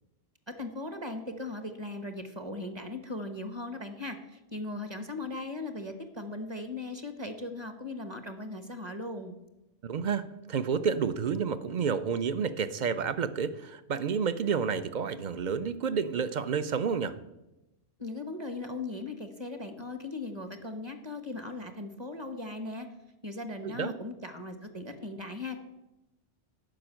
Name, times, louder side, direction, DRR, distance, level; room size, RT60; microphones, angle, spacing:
voice 1, 0.5-9.3 18.0-22.9 23.2-25.6, left 2 dB, 25° right, 7 dB, 1.1 m, -38 dB
voice 2, 9.8-17.2 23.6-23.9, right 6 dB, 50° right, 13 dB, 0.6 m, -30 dB
11.5 x 6.0 x 8.9 m, 0.96 s
omnidirectional pair, 1.3 m